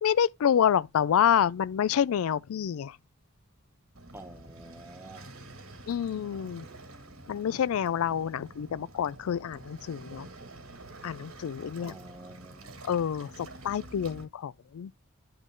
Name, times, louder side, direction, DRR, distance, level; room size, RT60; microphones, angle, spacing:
voice 1, 0.0-3.0 5.9-6.7 7.3-10.3 11.0-11.9 12.8-14.9, left 8 dB, 75° left, 0.3 m, -28 dB
Waves surf, 3.9-14.2, right 2 dB, 80° right, 2.0 m, -48 dB
voice 2, 4.1-5.4 11.8-12.8, right 1 dB, 10° right, 0.8 m, -48 dB
10.5 x 3.8 x 3.7 m
head